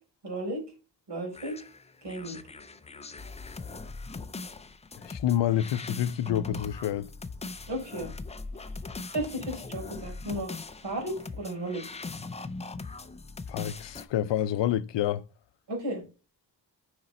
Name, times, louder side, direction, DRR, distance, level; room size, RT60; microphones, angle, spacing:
voice 1, 0.2-0.6 1.1-1.6 2.0-2.4 7.7-8.1 9.1-11.8 15.7-16.0, right 1 dB, 80° right, 4.3 m, -34 dB
sound 1, 1.3-14.0, left 3 dB, 15° left, 0.3 m, -40 dB
voice 2, 5.0-7.1 13.5-15.2, left 11 dB, 90° left, 0.6 m, -28 dB
6.8 x 5.1 x 4.2 m
wide cardioid pair, 180°, 42 cm